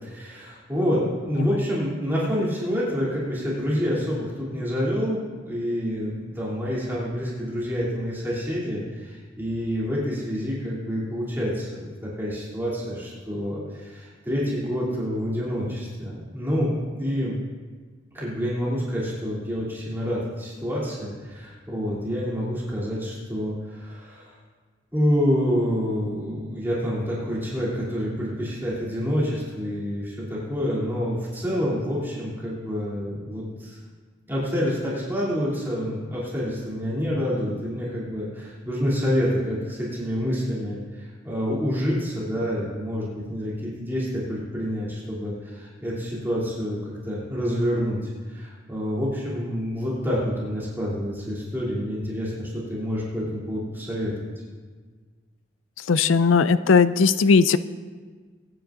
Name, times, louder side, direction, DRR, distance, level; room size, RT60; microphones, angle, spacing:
voice 1, 0.0-17.4 18.1-24.3 24.9-33.8 34.3-48.0 48.3-54.3, equal, 10° right, -8 dB, 2.9 m, -27 dB
voice 2, 55.9-57.6, left 5 dB, 85° left, 14 dB, 0.4 m, -18 dB
22.5 x 9.5 x 2.5 m, 1.5 s
head